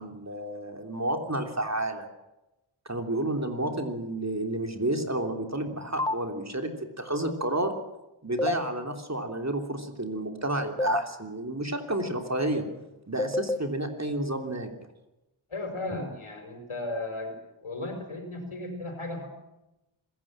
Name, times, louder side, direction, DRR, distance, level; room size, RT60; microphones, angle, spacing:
voice 1, 0.0-2.1 2.8-6.7 7.0-7.7 8.2-12.7 13.1-14.7, right 1 dB, 30° right, 5 dB, 3.2 m, -30 dB
sound 1, 6.0-6.1 8.4-8.5 10.8-11.0 13.2-13.6, left 2 dB, 10° left, 0.7 m, -26 dB
voice 2, 15.5-17.4 17.6-19.3, left 2 dB, 80° left, 5 dB, 5.7 m, -35 dB
26.5 x 15.5 x 7.5 m, 0.97 s
wide cardioid pair, 60°, 49 cm